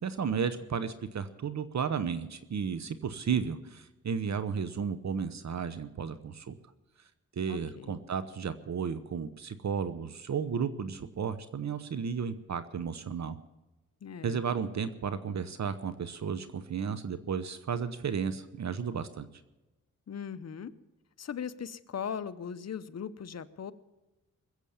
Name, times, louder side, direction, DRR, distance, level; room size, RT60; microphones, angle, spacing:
voice 1, 0.0-6.5 7.4-13.4 14.2-19.3, right 6 dB, 60° right, 12 dB, 0.9 m, -33 dB
voice 2, 7.5-7.9 14.0-14.4 20.1-20.7 21.2-23.7, left 7 dB, 55° left, 13 dB, 0.9 m, -39 dB
21.0 x 8.1 x 7.2 m, 1.0 s
cardioid pair, 75°, 31 cm